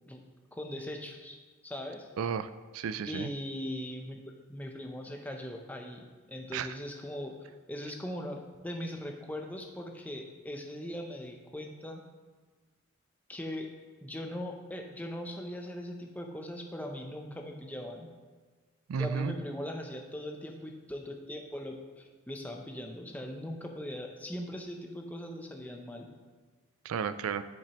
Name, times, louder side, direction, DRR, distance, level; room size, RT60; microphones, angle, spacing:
voice 1, 0.5-2.1 3.1-4.2 4.5-12.0 13.3-13.7 14.0-18.1 19.0-26.1, left 1 dB, 5° left, 2 dB, 0.6 m, -40 dB
voice 2, 2.2-3.3 6.5-6.7 18.9-19.4 26.8-27.4, right 6 dB, 80° right, 13 dB, 0.3 m, -33 dB
7.9 x 7.1 x 3.0 m, 1.4 s
head